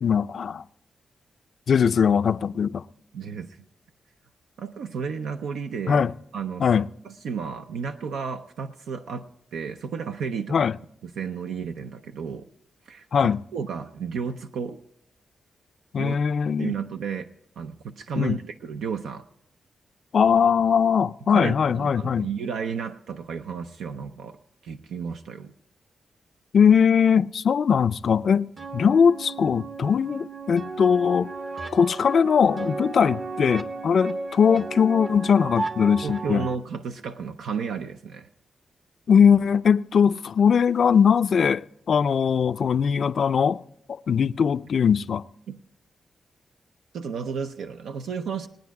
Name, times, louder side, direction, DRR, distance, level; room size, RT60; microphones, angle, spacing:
voice 1, 0.0-0.6 1.7-2.8 5.9-6.1 6.6-6.9 10.5-10.8 13.1-13.4 15.9-16.7 18.2-18.4 20.1-22.3 26.5-31.3 31.7-36.5 39.1-43.6 43.9-45.2, left 7 dB, 65° left, 0.4 m, -20 dB
voice 2, 3.1-3.6 4.6-6.1 6.3-6.6 7.0-9.3 9.5-10.7 11.0-12.5 12.9-14.8 16.0-16.2 16.6-17.3 17.6-19.2 21.3-24.4 24.6-25.5 36.0-38.3 45.5-45.6 46.9-48.5, right 6 dB, 90° right, 0.6 m, -32 dB
sound 1, 28.6-36.5, right 3 dB, 45° right, 0.9 m, -34 dB
20.5 x 9.3 x 4.7 m
cardioid pair, 75°, 0 cm